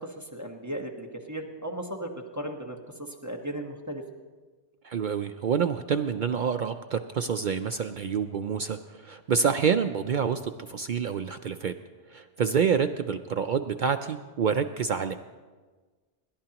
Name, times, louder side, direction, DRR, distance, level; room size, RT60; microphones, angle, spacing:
voice 1, 0.0-2.8 3.2-4.0, right 1 dB, 15° right, 1 dB, 1.2 m, -36 dB
voice 2, 4.8-11.7 12.1-15.1, right 6 dB, 60° right, 8 dB, 0.5 m, -27 dB
27.0 x 12.0 x 2.9 m, 1.4 s
omnidirectional pair, 1.2 m